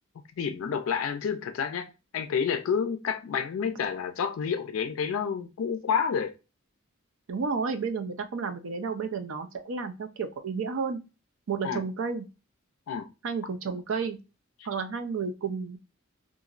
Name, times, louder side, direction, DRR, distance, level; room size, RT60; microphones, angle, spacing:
voice 1, 0.4-6.3 11.6-11.8 12.9-13.1, left 6 dB, 70° left, 0.3 m, -29 dB
voice 2, 7.3-11.0 11.5-12.2 13.2-14.2 14.6-15.8, right 5 dB, 65° right, 0.5 m, -31 dB
2.8 x 2.5 x 2.4 m
head